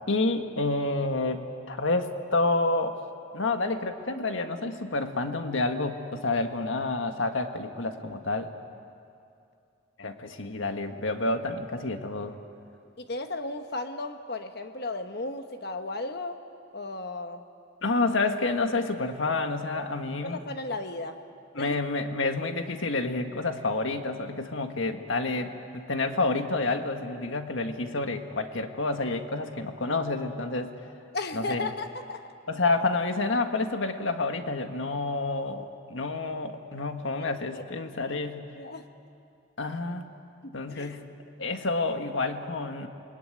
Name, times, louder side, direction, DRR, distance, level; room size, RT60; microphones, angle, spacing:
voice 1, 0.1-3.0 3.3-8.5 10.0-12.4 17.8-20.4 21.5-30.7 31.3-31.7 32.5-38.5 39.6-40.1 40.5-41.1 41.4-42.9, left 3 dB, 75° left, 6 dB, 1.7 m, -29 dB
voice 2, 13.0-16.4 16.7-17.4 20.2-21.2 21.6-21.8 31.1-32.3 37.2-37.3 37.5-37.6 38.1-38.2 38.5-38.9 40.4-41.0, left 2 dB, 55° left, 7 dB, 1.1 m, -35 dB
28.5 x 21.5 x 9.2 m, 2.5 s
head